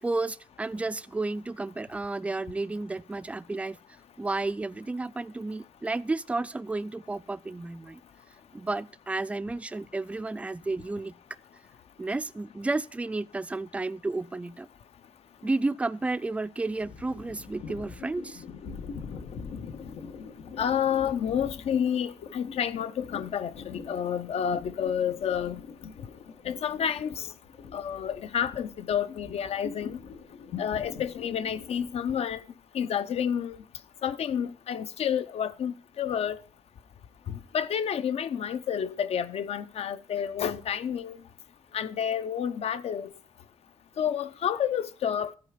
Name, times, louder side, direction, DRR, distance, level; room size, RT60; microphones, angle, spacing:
voice 1, 0.0-3.8 4.2-8.0 8.5-11.1 12.0-14.7 15.4-18.4, right 2 dB, 10° right, 0.3 m, -32 dB
sound 1, 16.8-32.2, left 5 dB, 90° left, 1.4 m, -43 dB
voice 2, 20.6-25.6 26.4-27.3 27.7-30.0 30.6-32.4 32.7-33.6 34.0-36.4 37.3-41.2 41.7-43.1 44.0-45.3, left 8 dB, 60° left, 0.6 m, -29 dB
13.0 x 4.7 x 5.0 m
cardioid pair, 115°, 12 cm